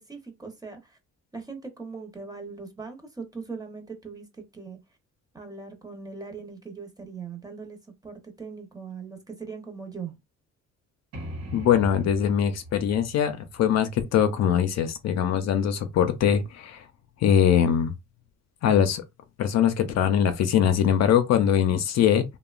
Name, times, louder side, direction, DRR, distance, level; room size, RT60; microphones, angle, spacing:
voice 1, 0.1-1.0 1.3-4.3 4.5-4.8 5.3-7.8 8.0-10.1, right 5 dB, 10° right, 0.8 m, -40 dB
sound 1, 11.1-14.8, equal, 60° right, 0.9 m, -41 dB
voice 2, 11.5-16.8 17.2-17.9 18.6-19.0 19.4-22.2, left 9 dB, 60° left, 0.5 m, -22 dB
2.8 x 2.1 x 2.4 m
cardioid pair, 90°, 30 cm